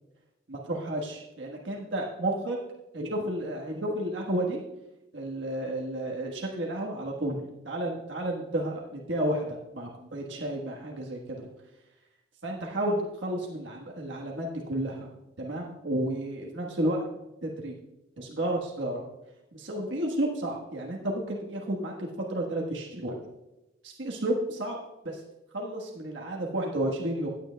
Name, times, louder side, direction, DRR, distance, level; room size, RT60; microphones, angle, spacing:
voice 1, 0.5-2.6 2.9-4.6 5.1-11.5 12.4-15.1 15.4-17.7 18.2-19.0 19.5-23.2 23.8-24.8 25.0-25.2 25.5-27.3, right 1 dB, 80° right, -1 dB, 1.4 m, -32 dB
16.5 x 9.2 x 2.2 m, 0.98 s
head